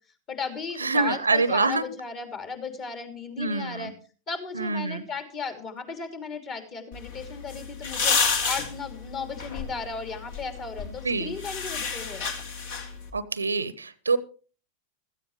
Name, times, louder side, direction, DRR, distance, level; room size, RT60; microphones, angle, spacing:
voice 1, 0.3-3.9 4.3-12.3, left 5 dB, 30° left, 6 dB, 3.0 m, -35 dB
voice 2, 0.8-1.8 3.4-3.9 4.5-5.0 11.0-11.3 13.1-14.2, right 3 dB, 75° right, 18 dB, 0.9 m, -25 dB
sound 1, 6.9-13.1, left 5 dB, 55° left, 2.3 m, -31 dB
16.0 x 14.0 x 3.2 m, 0.37 s
figure-of-eight pair, 90°, 0 cm